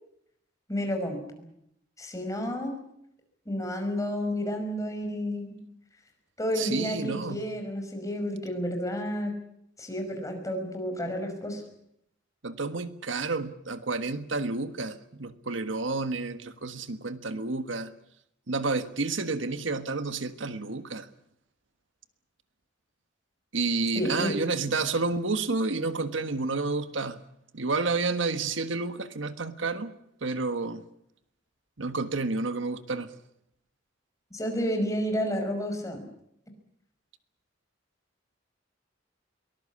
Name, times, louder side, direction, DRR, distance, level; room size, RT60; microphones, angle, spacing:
voice 1, 0.7-1.2 2.0-2.8 3.5-5.6 6.4-9.3 9.8-11.6 23.9-24.4 34.3-36.1, equal, 15° left, 4 dB, 5.6 m, -31 dB
voice 2, 6.6-7.5 12.4-17.9 18.5-21.1 23.5-27.2 27.5-29.9 30.2-30.8 31.8-33.1, right 3 dB, 80° right, 10 dB, 1.5 m, -30 dB
23.0 x 19.5 x 8.6 m, 0.75 s
head